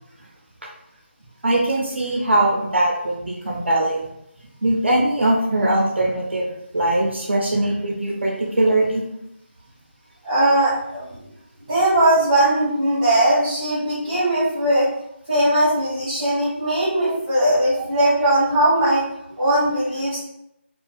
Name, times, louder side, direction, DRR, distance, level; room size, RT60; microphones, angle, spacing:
voice 1, 1.4-4.0 4.6-6.5 6.7-9.0, right 1 dB, 65° right, -2 dB, 0.5 m, -21 dB
voice 2, 10.2-11.1 11.7-14.9 15.3-19.0 19.4-20.2, right 1 dB, 15° right, -14 dB, 1.1 m, -19 dB
2.5 x 2.3 x 2.3 m, 0.80 s
figure-of-eight pair, 160°, 7 cm